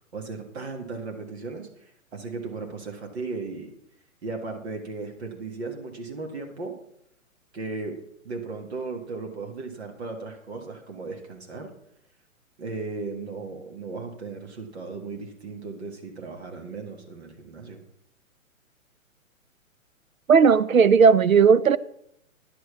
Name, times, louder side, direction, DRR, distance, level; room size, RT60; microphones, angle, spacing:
voice 1, 0.1-3.7 4.2-6.7 7.5-8.0 8.2-11.7 12.6-17.8, right 3 dB, 50° right, 1.7 m, -36 dB
voice 2, 20.3-21.8, right 6 dB, 75° right, 0.6 m, -16 dB
10.0 x 6.3 x 7.0 m
figure-of-eight pair, 125°, 42 cm